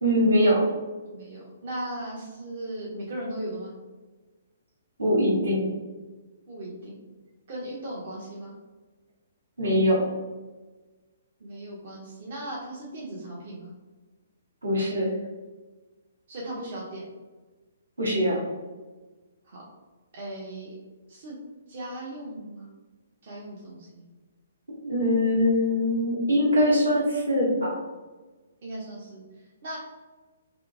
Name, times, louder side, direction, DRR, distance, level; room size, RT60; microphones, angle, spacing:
voice 1, 0.0-0.6 5.0-5.6 9.6-10.1 14.6-15.1 18.0-18.4 24.8-27.8, equal, 75° right, -4 dB, 1.0 m, -22 dB
voice 2, 1.1-3.7 6.5-7.0 7.5-8.5 11.4-13.7 16.3-17.1 19.5-19.6 20.1-20.7 21.1-21.4 21.7-22.7 23.2-24.1 28.6-29.2 29.6-29.8, right 1 dB, 50° right, -4 dB, 0.6 m, -37 dB
2.7 x 2.4 x 2.5 m, 1.3 s
figure-of-eight pair, 125°, 0 cm